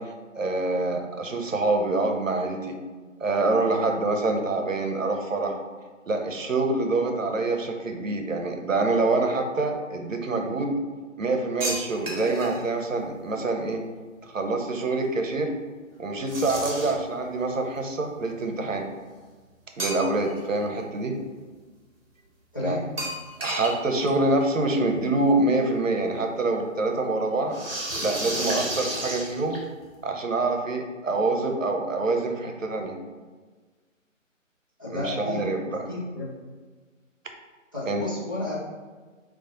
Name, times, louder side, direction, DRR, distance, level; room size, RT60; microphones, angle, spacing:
voice 1, 0.0-2.8 3.2-5.5 6.1-10.7 11.2-13.8 14.2-15.5 16.0-18.9 19.8-21.1 22.6-22.8 23.4-27.6 28.0-29.6 30.0-33.0 34.9-35.8 37.9-38.0, right 2 dB, 75° right, 3 dB, 0.7 m, -26 dB
sound 1, 11.6-12.6 16.3-17.1 19.8-20.4 20.8-20.9 23.0-23.8 24.0-24.1 24.4-24.5 25.7-25.8 27.5-29.8, right 1 dB, 45° right, 1.1 m, -32 dB
voice 2, 34.8-35.4 35.9-36.3 37.7-38.6, left 2 dB, 15° left, -9 dB, 0.6 m, -31 dB
4.0 x 2.5 x 3.7 m, 1.4 s
figure-of-eight pair, 150°, 39 cm